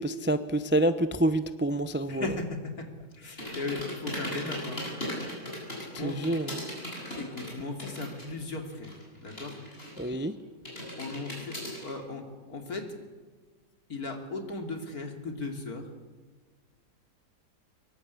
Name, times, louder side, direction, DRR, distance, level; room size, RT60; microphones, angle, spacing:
voice 1, 0.0-2.2 6.0-6.5 10.0-10.3, right 1 dB, 15° right, 11 dB, 0.4 m, -27 dB
voice 2, 2.1-4.8 5.9-6.2 7.2-9.6 11.0-13.0 13.9-15.9, left 3 dB, 60° left, 4 dB, 3.3 m, -37 dB
sound 1, 3.4-8.4 8.6-10.2 10.7-11.9, equal, 35° left, 8.4 m, -38 dB
24.0 x 22.5 x 8.5 m, 1.4 s
omnidirectional pair, 1.8 m